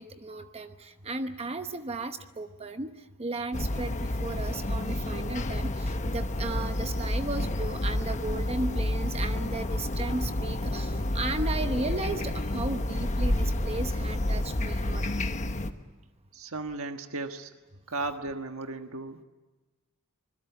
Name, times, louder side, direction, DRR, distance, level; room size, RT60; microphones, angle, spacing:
voice 1, 0.0-15.0, right 2 dB, 30° right, 8 dB, 0.9 m, -35 dB
sound 1, 3.5-15.7, left 1 dB, 35° left, 1.1 m, -30 dB
voice 2, 16.3-17.5 17.9-19.2, right 3 dB, 75° right, 6 dB, 1.5 m, -35 dB
26.5 x 21.0 x 8.1 m, 1.2 s
head